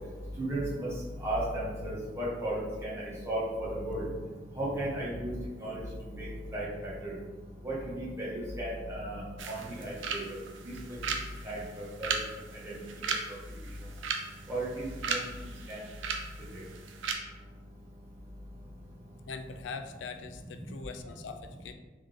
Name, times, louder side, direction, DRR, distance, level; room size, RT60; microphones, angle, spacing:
voice 1, 0.4-0.9 1.2-4.0 4.6-5.3 5.6-5.8 6.1-6.3 6.5-6.7 7.0-7.1 7.6-9.2 9.5-10.2 10.6-10.7 11.4-11.6 12.0-12.1 12.6-12.8 14.5-15.2 15.7-15.8, right 1 dB, 15° right, -8 dB, 1.4 m, -34 dB
sound 1, 9.4-17.1, right 5 dB, 90° right, 0.5 m, -37 dB
voice 2, 19.3-21.7, left 4 dB, 70° left, 8 dB, 0.4 m, -42 dB
3.7 x 3.6 x 3.7 m, 1.3 s
head